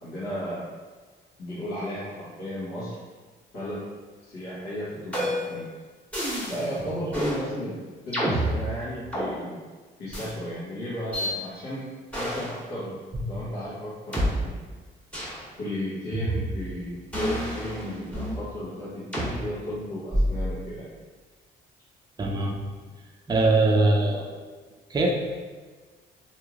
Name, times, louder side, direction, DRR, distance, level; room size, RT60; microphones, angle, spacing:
voice 1, 0.0-0.6 1.4-3.0 3.5-3.8 4.2-5.6 6.5-7.8 8.1-9.6 10.0-11.8 12.1-13.0 13.3-14.5 15.6-20.9 24.1-24.2, equal, 85° left, -12 dB, 1.1 m, -34 dB
sound 1, 5.1-5.6 6.1-6.7 7.1-7.4 8.1-9.3 10.1-10.3 11.1-11.3 12.1-12.5 13.1-13.2 14.1-14.3 15.1-15.4 16.1-16.7 17.1-18.4 19.1-19.3 20.1-20.5, equal, 5° left, 1.4 m, -28 dB
voice 2, 22.2-22.5 23.3-24.4 24.9-25.1, right 2 dB, 20° right, 0 dB, 0.4 m, -22 dB
3.0 x 2.7 x 2.4 m, 1.4 s
cardioid pair, 90°, 20 cm